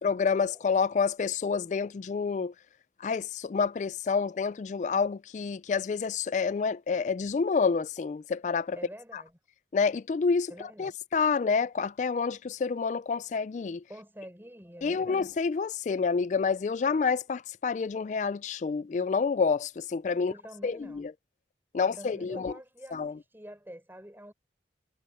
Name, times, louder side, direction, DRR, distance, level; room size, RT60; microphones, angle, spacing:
voice 1, 0.0-2.5 3.0-8.8 9.1-9.2 9.7-13.8 14.8-20.3 20.6-21.1 21.7-22.5 22.9-23.2, left 5 dB, 45° left, 0.3 m, -28 dB
voice 2, 8.7-9.3 10.5-11.0 13.9-15.3 20.2-21.1 21.8-24.3, equal, 10° right, 4.4 m, -47 dB
head